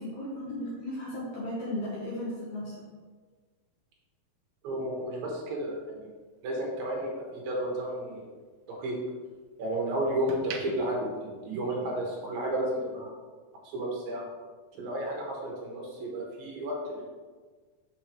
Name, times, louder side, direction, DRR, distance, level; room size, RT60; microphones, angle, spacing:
voice 1, 0.0-2.9, left 1 dB, 65° left, -6 dB, 2.0 m, -35 dB
voice 2, 4.6-6.1 6.4-8.3 8.8-9.0 9.6-13.1 13.7-14.3 14.7-17.0, right 1 dB, 70° right, -2 dB, 2.8 m, -32 dB
sound 1, 5.5-7.8 8.2-9.6 10.1-12.2 12.5-12.8, right 5 dB, 85° right, 2.6 m, -45 dB
6.7 x 6.5 x 3.0 m, 1.5 s
omnidirectional pair, 4.4 m